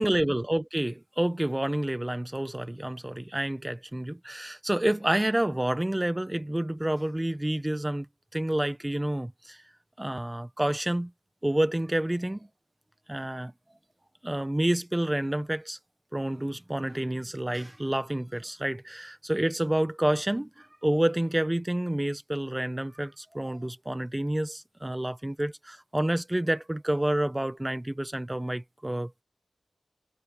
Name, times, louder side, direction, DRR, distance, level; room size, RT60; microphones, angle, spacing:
voice 1, 0.0-8.1 8.3-9.6 10.0-11.1 11.4-12.5 13.1-13.5 14.2-15.8 16.1-29.2, right 1 dB, 15° right, 1.1 m, -29 dB
cardioid pair, 65°, 0 cm